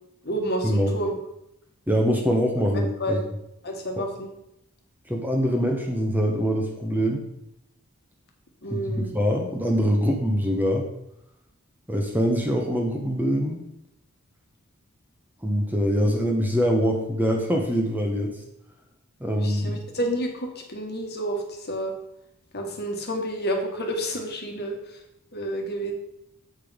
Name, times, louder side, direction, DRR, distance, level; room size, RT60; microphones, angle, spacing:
voice 1, 0.2-1.1 2.7-3.3 3.6-4.3 8.6-9.1 19.4-21.9 22.5-25.0 25.3-25.9, right 1 dB, 50° left, 2 dB, 1.5 m, -30 dB
voice 2, 1.9-3.2 4.0-4.1 5.1-7.2 8.7-10.9 11.9-13.6 15.4-18.4 19.2-19.8, equal, 10° right, 1 dB, 1.0 m, -24 dB
8.2 x 5.3 x 5.1 m, 0.81 s
head